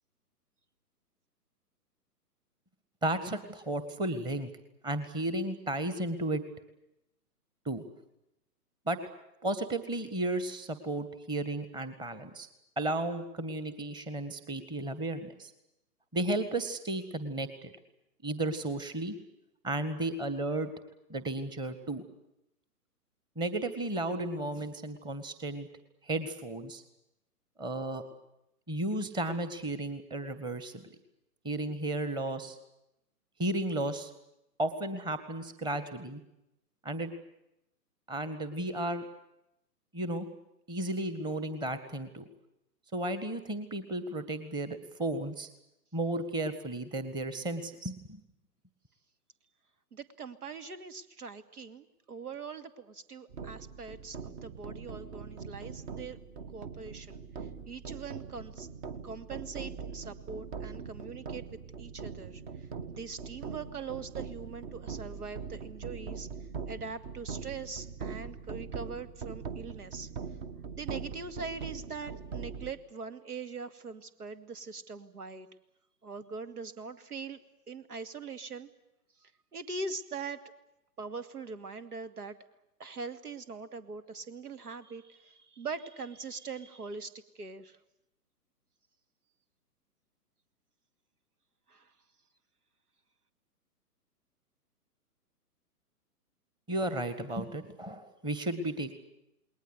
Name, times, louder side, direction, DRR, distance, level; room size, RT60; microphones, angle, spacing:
voice 1, 3.0-4.5 4.8-6.4 7.7-7.8 8.9-9.0 9.4-12.5 12.8-15.5 16.1-17.7 18.2-19.2 19.6-20.7 21.1-22.0 23.4-25.7 26.0-26.8 27.6-28.0 28.7-30.9 31.4-32.6 33.4-34.1 34.6-36.2 36.8-37.1 38.1-39.1 39.9-40.3 40.7-42.2 42.9-45.5 45.9-48.2 96.7-98.9, right 1 dB, 10° right, 11 dB, 1.7 m, -34 dB
voice 2, 49.9-56.2 56.5-57.2 57.7-58.7 59.0-61.5 61.8-62.4 63.0-66.3 66.7-70.1 70.7-75.5 76.0-77.4 77.7-78.7 79.5-80.4 81.0-82.3 82.8-87.8 91.7-91.9, right 4 dB, 70° right, 11 dB, 2.4 m, -42 dB
sound 1, 53.3-72.7, right 5 dB, 30° right, 1.7 m, -42 dB
29.0 x 20.5 x 8.1 m, 0.86 s
figure-of-eight pair, 125°, 48 cm